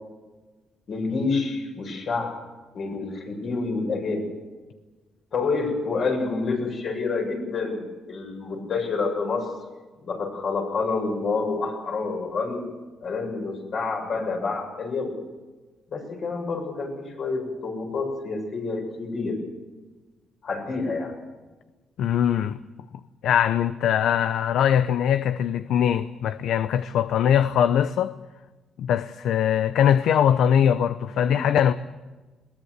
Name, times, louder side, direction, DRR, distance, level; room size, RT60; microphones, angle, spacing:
voice 1, 0.9-2.4 2.7-4.3 5.3-9.5 10.0-12.6 13.0-15.1 15.9-19.4 20.4-21.1, left 4 dB, 60° left, 7.2 m, -28 dB
voice 2, 22.0-22.6 23.2-28.1 28.8-31.7, left 9 dB, 75° left, 0.7 m, -21 dB
21.5 x 19.0 x 8.1 m
cardioid pair, 90°, 0 cm